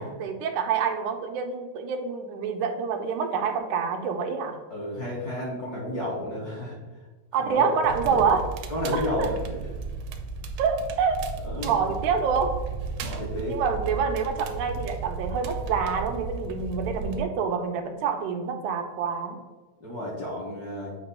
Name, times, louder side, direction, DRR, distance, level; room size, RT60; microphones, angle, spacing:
voice 1, 0.0-4.6 7.3-8.4 8.9-9.3 10.6-11.2 11.6-12.6 13.5-19.4, right 6 dB, 90° right, 5 dB, 2.3 m, -27 dB
voice 2, 4.7-6.8 7.4-7.7 8.1-8.2 8.7-9.3 11.4-11.8 13.0-13.6 19.8-21.0, left 1 dB, 45° left, -5 dB, 1.4 m, -31 dB
Crackle, 7.8-17.2, right 4 dB, 75° right, 1.7 m, -35 dB
8.6 x 2.9 x 5.4 m, 1.2 s
omnidirectional pair, 3.4 m